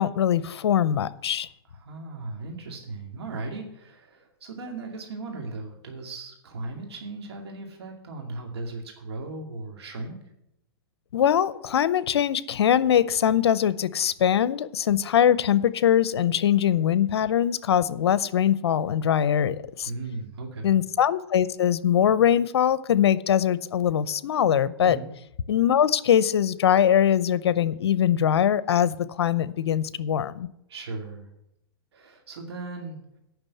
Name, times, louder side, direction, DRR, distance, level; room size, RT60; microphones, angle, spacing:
voice 1, 0.0-1.5 11.1-19.9 20.6-25.0 25.5-30.5, left 9 dB, 80° left, 17 dB, 0.7 m, -22 dB
voice 2, 1.7-10.2 19.8-20.8 24.8-25.1 30.7-31.3 31.9-33.0, right 3 dB, 80° right, 2 dB, 2.4 m, -37 dB
8.9 x 6.0 x 8.4 m, 0.81 s
hypercardioid pair, 135°, 13 cm